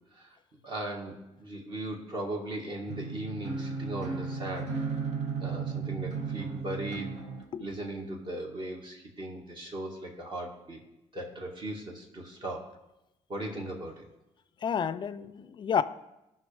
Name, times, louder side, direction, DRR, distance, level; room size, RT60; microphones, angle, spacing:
voice 1, 0.6-4.7 5.4-7.2 7.6-10.8 11.1-12.7 13.3-14.0, right 1 dB, 40° right, 1.9 m, -38 dB
sound 1, 2.9-7.4, right 5 dB, 70° right, 1.7 m, -34 dB
voice 2, 14.6-15.8, left 7 dB, 40° left, 0.4 m, -30 dB
16.5 x 5.6 x 3.4 m
cardioid pair, 135°, 12 cm